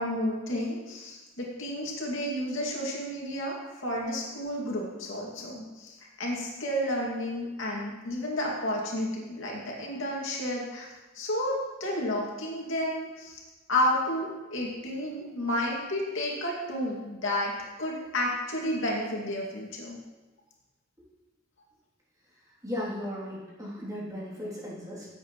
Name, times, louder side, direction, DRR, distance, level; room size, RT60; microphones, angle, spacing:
voice 1, 0.0-3.6 3.8-10.9 11.1-13.4 13.7-20.0, left 1 dB, 80° left, -3 dB, 2.5 m, -31 dB
voice 2, 22.6-25.1, left 1 dB, 20° right, -7 dB, 3.2 m, -36 dB
16.0 x 8.2 x 3.2 m, 1.2 s
head